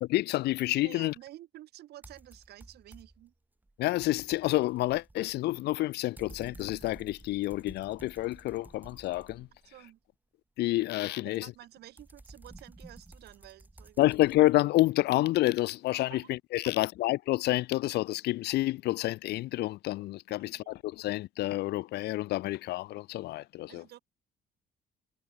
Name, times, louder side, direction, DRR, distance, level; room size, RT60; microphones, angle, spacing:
voice 1, 0.0-1.1 3.8-9.5 10.6-11.5 14.0-23.8, left 17 dB, 75° left, 1.0 m, -29 dB
voice 2, 0.8-3.3 9.6-10.0 11.2-14.1 16.1-16.3 16.6-16.8 20.5-20.8 23.7-24.0, right 14 dB, 75° right, 6.5 m, -51 dB
sound 1, 2.0-3.3 3.7-9.9 11.4-14.6, right 2 dB, 10° right, 2.4 m, -53 dB
cardioid pair, 110°, 17 cm